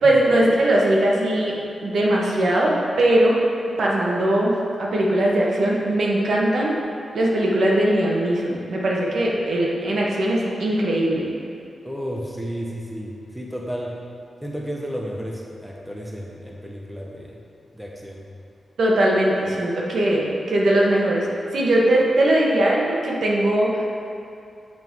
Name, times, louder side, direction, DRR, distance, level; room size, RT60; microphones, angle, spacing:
voice 1, 0.0-1.5 1.8-3.4 3.8-6.8 7.1-11.3 18.8-21.3 21.5-23.7, right 1 dB, 60° right, -3 dB, 1.1 m, -20 dB
voice 2, 11.8-13.9 14.4-17.4 17.7-18.2, equal, 5° right, -3 dB, 0.6 m, -32 dB
7.9 x 3.6 x 4.6 m, 2.5 s
wide cardioid pair, 165°, 0 cm